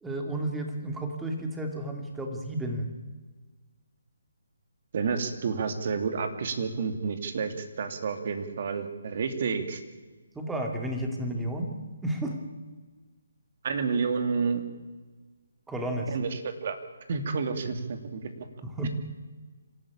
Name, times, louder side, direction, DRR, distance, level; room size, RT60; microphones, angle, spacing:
voice 1, 0.0-2.9 10.3-12.4 15.7-16.1 18.6-18.9, right 1 dB, 5° right, 2 dB, 2.8 m, -32 dB
voice 2, 4.9-9.8 13.6-14.6 16.1-16.8 17.1-18.5 18.8-18.9, right 5 dB, 50° right, 7 dB, 2.6 m, -30 dB
26.0 x 13.5 x 8.8 m, 1.3 s
figure-of-eight pair, 150°, 0 cm